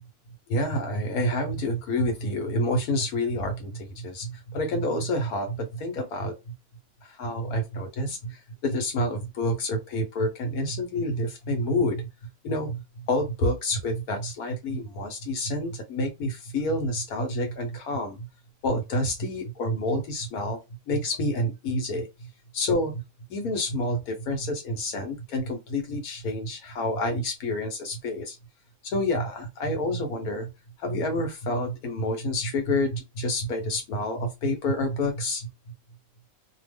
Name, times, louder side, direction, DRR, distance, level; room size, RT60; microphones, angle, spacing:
voice 1, 0.5-6.5 7.0-12.1 12.4-18.3 18.6-20.6 20.9-23.0 23.3-28.4 28.9-30.5 30.8-35.5, left 1 dB, 80° left, 1.4 m, -28 dB
3.0 x 2.1 x 3.4 m
omnidirectional pair, 1.5 m